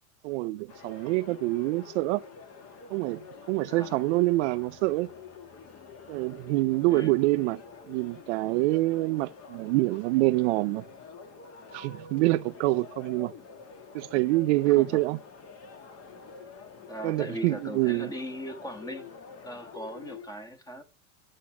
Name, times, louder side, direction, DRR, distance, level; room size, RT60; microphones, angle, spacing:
voice 1, 0.2-2.2 2.9-3.2 3.5-5.1 6.1-7.6 7.9-10.8 11.7-13.3 13.9-15.2 17.0-18.1, right 20 dB, 55° right, 0.5 m, -26 dB
sound 1, 0.7-20.3, left 5 dB, 35° left, 1.8 m, -47 dB
voice 2, 3.7-4.0 6.9-7.1 14.7-15.0 16.9-19.1 19.4-20.8, equal, 10° left, 1.4 m, -39 dB
11.0 x 7.5 x 5.8 m
supercardioid pair, 140°, 43 cm